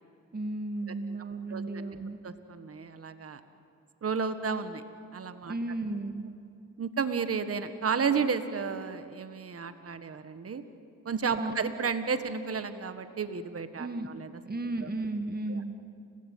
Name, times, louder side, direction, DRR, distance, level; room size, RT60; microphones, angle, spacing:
voice 1, 0.3-2.2 5.5-6.3 11.4-11.5 13.8-14.1 14.5-15.7, right 2 dB, 30° right, 7 dB, 2.0 m, -34 dB
voice 2, 0.9-1.9 2.2-3.4 4.0-4.8 5.1-5.5 6.8-10.6 11.0-14.4 14.8-14.9 15.5-15.6, right 5 dB, 50° right, 10 dB, 1.7 m, -32 dB
29.5 x 16.5 x 9.3 m, 2.5 s
supercardioid pair, 55°, 31 cm